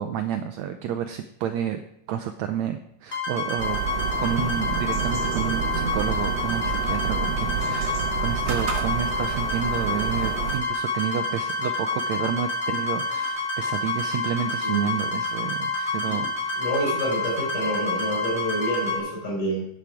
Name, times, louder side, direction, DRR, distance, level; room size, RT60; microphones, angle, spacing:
voice 1, 0.0-1.8 2.1-3.8 4.2-16.6, right 9 dB, 85° right, 8 dB, 1.6 m, -30 dB
sound 1, 3.1-19.0, left 2 dB, 20° left, 4.7 m, -28 dB
sound 2, 3.6-10.6, right 7 dB, 65° right, 1.8 m, -29 dB
voice 2, 16.6-19.7, right 1 dB, 65° left, -2 dB, 5.7 m, -28 dB
10.5 x 9.2 x 4.8 m, 0.76 s
omnidirectional pair, 3.8 m